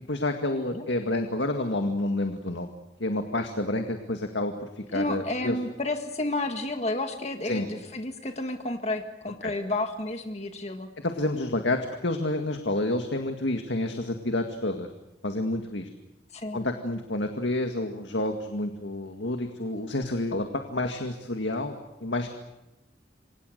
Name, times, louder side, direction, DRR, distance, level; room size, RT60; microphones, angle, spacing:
voice 1, 0.1-2.7 3.0-5.6 7.4-7.7 9.4-9.5 11.0-14.9 15.2-15.9 16.5-22.3, left 1 dB, 80° left, 5 dB, 2.0 m, -29 dB
voice 2, 4.9-10.9 16.3-16.6, left 2 dB, 35° left, 6 dB, 1.7 m, -31 dB
28.5 x 25.0 x 6.7 m, 0.94 s
head